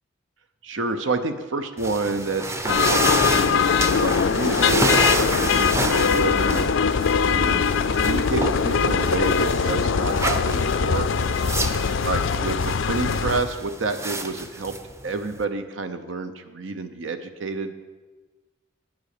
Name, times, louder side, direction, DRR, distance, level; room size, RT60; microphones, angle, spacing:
voice 1, 0.6-6.7 7.2-7.7 8.0-11.1 12.0-14.7 15.0-17.8, right 3 dB, 75° right, 9 dB, 0.7 m, -29 dB
sound 1, 1.8-15.4, right 2 dB, 15° right, 0.6 m, -30 dB
sound 2, 2.7-13.4, left 6 dB, 75° left, 0.5 m, -21 dB
9.3 x 8.1 x 6.6 m, 1.3 s
head